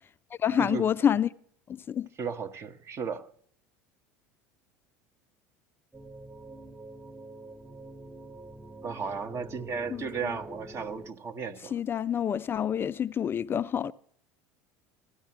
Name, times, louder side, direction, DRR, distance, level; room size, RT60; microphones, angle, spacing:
voice 1, 0.4-1.3 1.7-2.1 9.9-10.0 11.7-13.9, left 9 dB, 30° left, 0.4 m, -27 dB
voice 2, 2.2-3.3 8.8-11.8, right 5 dB, 35° right, 1.0 m, -35 dB
sound 1, 5.9-11.1, right 1 dB, 5° right, 0.7 m, -46 dB
16.0 x 12.5 x 3.0 m
hypercardioid pair, 75°, 8 cm